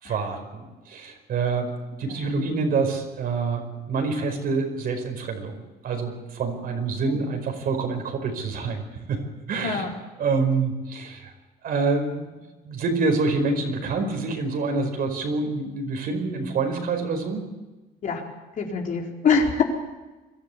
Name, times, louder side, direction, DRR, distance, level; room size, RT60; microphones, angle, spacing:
voice 1, 0.0-1.7 2.0-3.6 3.9-9.2 9.5-9.9 10.2-11.3 11.6-17.5, right 4 dB, 60° right, 4 dB, 5.1 m, -27 dB
voice 2, 18.6-19.6, left 5 dB, 50° left, 0 dB, 4.4 m, -24 dB
22.5 x 13.5 x 8.5 m, 1.1 s
cardioid pair, 110°, 17 cm